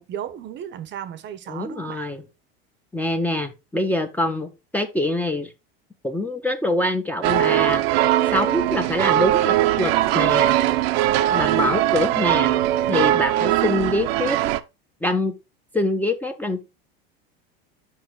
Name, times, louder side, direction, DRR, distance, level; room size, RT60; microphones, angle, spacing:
voice 1, 0.0-2.1, right 10 dB, 35° right, 0.7 m, -35 dB
voice 2, 1.5-2.2 2.9-5.5 6.0-7.8 8.3-10.6 11.3-14.4 15.0-15.3 15.7-16.6, left 1 dB, 5° left, 0.6 m, -25 dB
sound 1, 7.2-14.6, right 14 dB, 80° right, 0.7 m, -20 dB
5.7 x 5.2 x 3.6 m
supercardioid pair, 120°, 30 cm